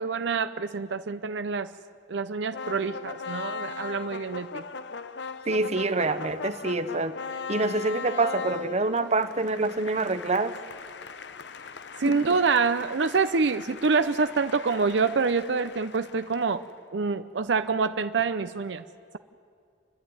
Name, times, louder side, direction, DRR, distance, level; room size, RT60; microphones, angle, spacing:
voice 1, 0.0-1.7 2.1-4.6 12.0-16.6 16.9-18.8, right 4 dB, 70° right, 10 dB, 0.6 m, -26 dB
sound 1, 2.5-16.7, left 5 dB, 70° left, 0.8 m, -39 dB
voice 2, 5.5-7.1 7.5-10.6 12.0-12.2, right 3 dB, 40° right, 10 dB, 1.0 m, -26 dB
30.0 x 12.0 x 9.6 m, 2.4 s
head